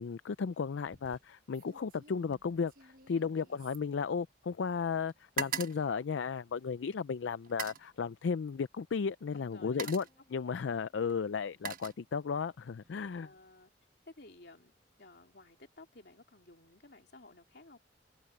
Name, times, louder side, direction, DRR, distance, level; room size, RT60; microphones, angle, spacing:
voice 1, 0.0-10.0 10.3-13.3, left 5 dB, 75° left, 0.4 m, -34 dB
sound 1, 0.9-1.2 1.5-4.7 4.9-6.8 7.4-7.9 8.9-9.1 9.5-10.2 11.1-12.5 12.8-13.2, right 6 dB, 50° right, 1.3 m, -43 dB
voice 2, 3.1-3.6 9.3-9.9 13.1-13.7 14.1-14.7 15.0-17.8, left 2 dB, 60° left, 3.1 m, -55 dB
Bass guitar, 9.5-15.8, left 1 dB, 20° left, 7.5 m, -76 dB
open air
head